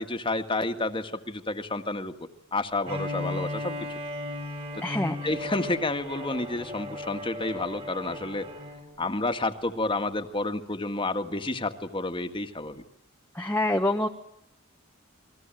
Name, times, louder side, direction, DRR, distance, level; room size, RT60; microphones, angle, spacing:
voice 1, 0.0-4.0 4.8-4.9 5.2-8.5 9.0-12.8, left 2 dB, 25° left, 7 dB, 1.9 m, -30 dB
Bowed string instrument, 2.8-8.9, left 1 dB, 30° right, 3.7 m, -36 dB
voice 2, 4.8-5.2 13.3-14.1, left 1 dB, 10° left, 3 dB, 1.3 m, -25 dB
30.0 x 21.5 x 9.1 m, 0.78 s
head